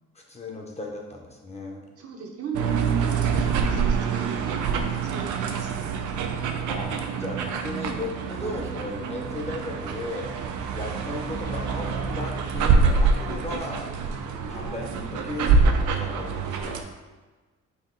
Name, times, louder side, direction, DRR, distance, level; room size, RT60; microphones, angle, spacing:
voice 1, 0.1-1.9 6.7-13.9 14.5-16.8, left 2 dB, 20° left, 0 dB, 0.6 m, -36 dB
voice 2, 2.0-6.8, right 5 dB, 50° right, 0 dB, 0.8 m, -37 dB
sound 1, 2.5-16.8, right 5 dB, 75° right, 0.5 m, -26 dB
4.2 x 2.4 x 3.8 m, 1.3 s
cardioid pair, 90°, 30 cm